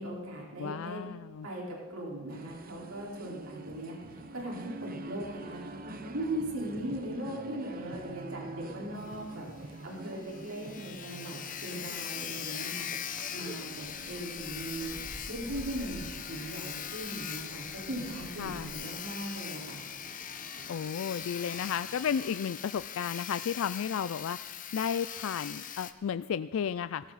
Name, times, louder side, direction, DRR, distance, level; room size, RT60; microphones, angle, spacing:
voice 1, 0.0-1.1 1.4-15.0 15.3-19.8, right 1 dB, 80° right, -3 dB, 4.4 m, -39 dB
voice 2, 0.6-1.5 18.4-18.7 20.7-27.1, left 7 dB, 70° left, 14 dB, 0.3 m, -33 dB
sound 1, 2.3-22.3, right 2 dB, 40° right, 1.0 m, -48 dB
Sawing, 9.0-9.1 9.4-9.5 9.9-10.0 10.2-25.9, left 9 dB, 40° left, 0.9 m, -41 dB
sound 2, 13.7-18.7, equal, ahead, 3.7 m, -49 dB
18.5 x 16.5 x 4.1 m, 1.5 s
head